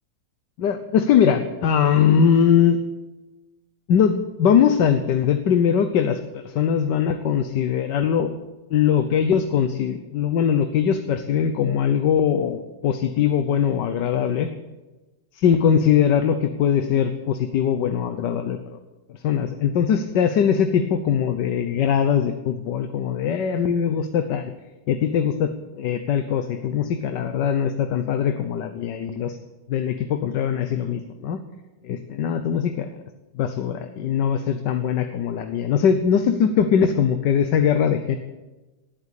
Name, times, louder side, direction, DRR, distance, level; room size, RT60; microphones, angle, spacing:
voice 1, 0.6-2.8 3.9-8.3 8.7-14.5 15.3-18.8 19.2-24.5 24.9-29.4 29.7-31.4 31.8-32.9 33.3-38.2, left 8 dB, 75° left, 8 dB, 1.5 m, -21 dB
19.0 x 9.0 x 8.3 m, 1.1 s
omnidirectional pair, 1.9 m